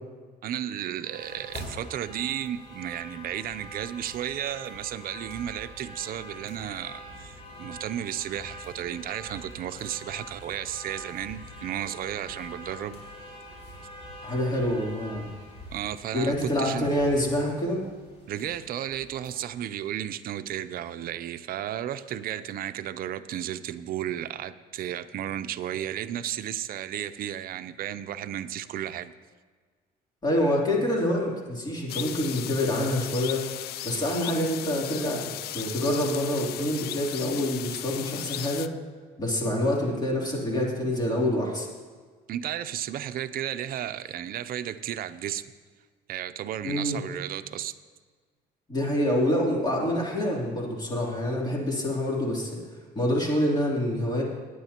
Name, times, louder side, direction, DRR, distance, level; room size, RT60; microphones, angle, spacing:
voice 1, 0.4-13.0 15.7-16.9 18.3-29.1 42.3-45.5 46.1-47.7, right 11 dB, 60° right, 12 dB, 0.6 m, -33 dB
sound 1, 1.0-19.4, equal, 40° left, 4.3 m, -45 dB
voice 2, 14.2-15.3 16.1-17.8 30.2-33.4 33.8-35.2 35.5-38.7 39.2-41.7 46.6-47.0 48.7-52.6 52.9-54.2, left 1 dB, 25° left, -2 dB, 3.2 m, -26 dB
sound 2, 31.9-38.7, left 13 dB, 70° left, 0.5 m, -36 dB
18.5 x 10.0 x 2.9 m, 1.5 s
cardioid pair, 110°, 17 cm